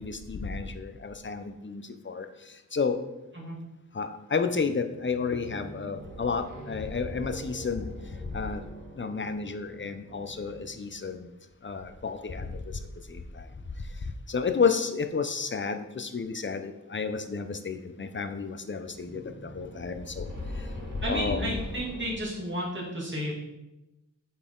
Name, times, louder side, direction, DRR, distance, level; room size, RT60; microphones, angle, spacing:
voice 1, 0.0-2.3 2.7-3.0 3.9-7.9 8.3-8.6 9.0-11.3 11.6-12.6 14.3-19.2 19.5-20.3 21.1-21.7, left 5 dB, 35° left, 8 dB, 0.6 m, -31 dB
sound 1, 4.4-11.3 18.8-22.2, right 1 dB, 80° right, 1.7 m, -46 dB
voice 2, 21.0-23.3, equal, 35° right, -5 dB, 2.4 m, -32 dB
8.2 x 4.2 x 3.8 m, 0.97 s
wide cardioid pair, 75°, 33 cm